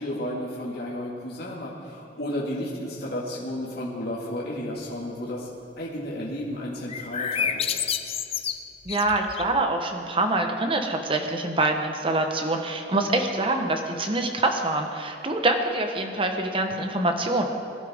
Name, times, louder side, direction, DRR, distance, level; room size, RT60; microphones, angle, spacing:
voice 1, 0.0-5.5 5.8-7.8, left 1 dB, 60° left, -5 dB, 2.1 m, -32 dB
sound 1, 6.9-9.6, left 7 dB, 35° left, 0.5 m, -29 dB
voice 2, 8.8-17.5, right 2 dB, 30° right, 4 dB, 1.1 m, -25 dB
22.0 x 11.5 x 3.7 m, 2.5 s
head